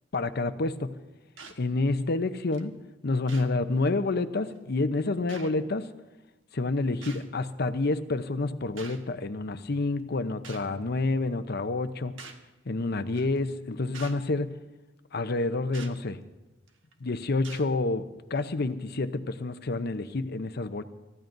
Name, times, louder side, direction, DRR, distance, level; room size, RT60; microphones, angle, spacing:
voice 1, 0.1-1.0 1.6-2.7 3.0-5.9 6.5-12.1 12.7-14.5 15.1-16.2 17.0-20.8, left 3 dB, 55° left, 10 dB, 0.7 m, -28 dB
sound 1, 1.4-1.6 2.5-2.6 3.3-3.5 4.5-4.6 5.3-5.5 7.0-7.3 8.8-9.0 10.4-10.7 12.2-12.4 13.1-13.4 13.9-14.2 15.7-15.9 16.7-16.9 17.4-17.7 18.4-18.5, right 4 dB, 75° right, 1.4 m, -45 dB
28.5 x 14.5 x 2.6 m, 1.1 s
head